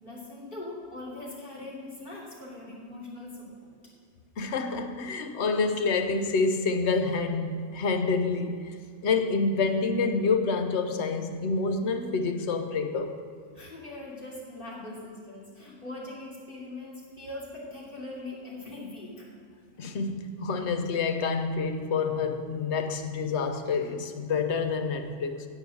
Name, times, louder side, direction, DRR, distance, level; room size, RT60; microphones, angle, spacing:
voice 1, 0.0-3.7 13.5-19.3, left 2 dB, 40° left, 3.1 m, -41 dB
voice 2, 4.4-8.8 9.0-13.2 19.8-25.5, left 4 dB, 65° left, 1.1 m, -28 dB
16.5 x 5.5 x 6.5 m
omnidirectional pair, 1.2 m